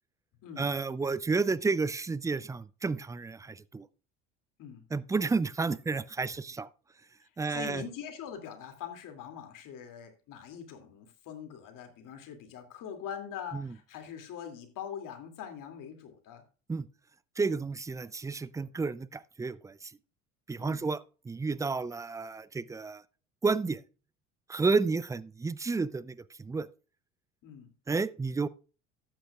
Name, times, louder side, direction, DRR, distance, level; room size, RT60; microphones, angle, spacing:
voice 1, 0.6-3.9 4.9-6.7 7.4-7.8 13.5-13.7 16.7-16.9 17.4-19.9 20.5-23.0 23.4-23.8 24.5-26.7 27.9-28.5, right 4 dB, 10° right, 0.3 m, -31 dB
voice 2, 7.5-16.4 20.6-20.9 27.4-27.7, left 8 dB, 55° left, 2.5 m, -43 dB
13.0 x 8.9 x 2.4 m
hypercardioid pair, 70°, 39 cm